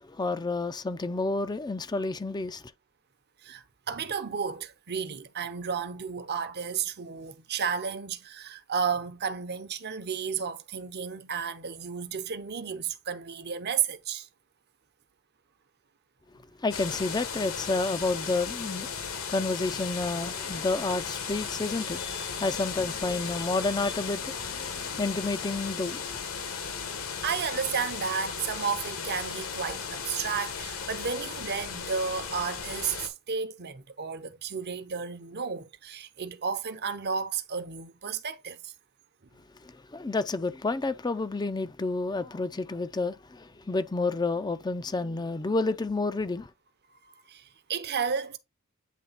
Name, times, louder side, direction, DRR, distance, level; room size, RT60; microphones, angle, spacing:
voice 1, 0.1-2.6 16.6-18.9 19.3-24.6 24.9-26.1 39.9-46.5, left 3 dB, 20° left, 0.5 m, -30 dB
voice 2, 3.4-14.3 27.2-38.7 47.0-48.4, right 6 dB, 50° right, 0.9 m, -32 dB
sound 1, 16.7-33.1, left 6 dB, 75° left, 1.4 m, -36 dB
9.2 x 3.3 x 4.1 m
head